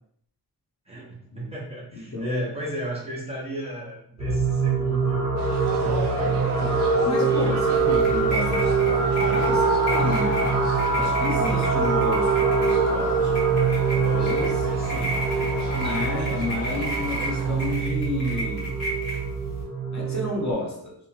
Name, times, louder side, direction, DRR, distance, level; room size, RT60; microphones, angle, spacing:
voice 1, 0.9-5.4 5.8-6.5 14.9-15.2, right 1 dB, 15° right, -5 dB, 0.5 m, -34 dB
voice 2, 1.9-2.4 6.6-13.4 13.9-14.7 15.7-18.8 19.9-20.9, left 2 dB, 45° left, -2 dB, 0.7 m, -32 dB
sound 1, 4.2-20.5, right 4 dB, 35° right, 0.8 m, -24 dB
sound 2, 5.4-17.9, right 4 dB, 90° right, 0.5 m, -36 dB
sound 3, 7.8-19.6, right 3 dB, 85° left, 1.2 m, -32 dB
2.9 x 2.0 x 2.5 m, 0.70 s
wide cardioid pair, 145°, 40 cm